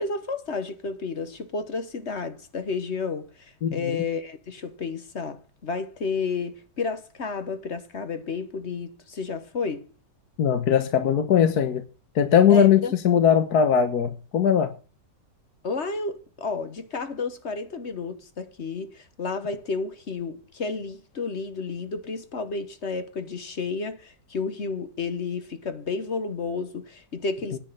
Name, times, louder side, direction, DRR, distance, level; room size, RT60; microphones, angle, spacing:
voice 1, 0.0-9.9 12.5-12.9 15.6-27.6, left 4 dB, 45° left, 1.3 m, -31 dB
voice 2, 10.4-11.8 12.1-14.7, left 8 dB, 65° left, 1.6 m, -20 dB
10.0 x 6.3 x 7.7 m
omnidirectional pair, 1.9 m